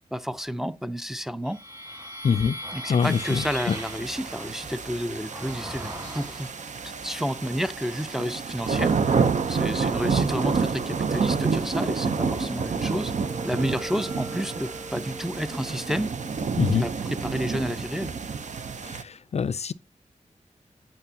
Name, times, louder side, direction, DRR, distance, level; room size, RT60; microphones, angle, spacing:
voice 1, 0.1-1.6 2.7-6.5 6.8-13.1 13.4-16.1 16.7-18.1, equal, 5° right, 0.5 m, -31 dB
sound 1, 1.4-6.9 7.5-8.3 8.8-18.0, equal, 30° right, 2.4 m, -42 dB
voice 2, 2.2-2.6 2.9-3.7 16.6-16.9 18.9-19.7, left 6 dB, 55° left, 0.4 m, -24 dB
sound 2, 3.0-19.0, right 5 dB, 65° right, 0.7 m, -29 dB
8.9 x 6.1 x 2.8 m
wide cardioid pair, 85°, 13 cm